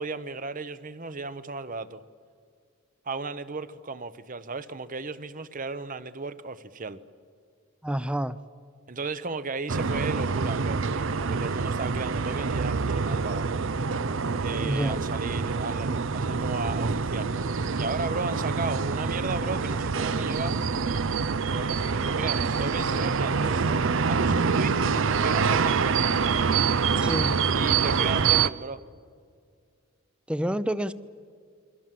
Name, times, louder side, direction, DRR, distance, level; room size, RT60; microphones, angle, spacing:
voice 1, 0.0-2.0 3.1-7.0 8.9-13.6 14.4-17.3 17.8-20.6 21.5-23.7 24.1-26.2 27.5-28.8, right 3 dB, 40° right, 1.0 m, -35 dB
voice 2, 7.8-8.4 14.6-15.0 27.0-27.4 30.3-30.9, right 1 dB, 5° right, 0.6 m, -28 dB
sound 1, 9.7-28.5, right 5 dB, 60° right, 0.6 m, -26 dB
29.0 x 23.0 x 7.7 m
head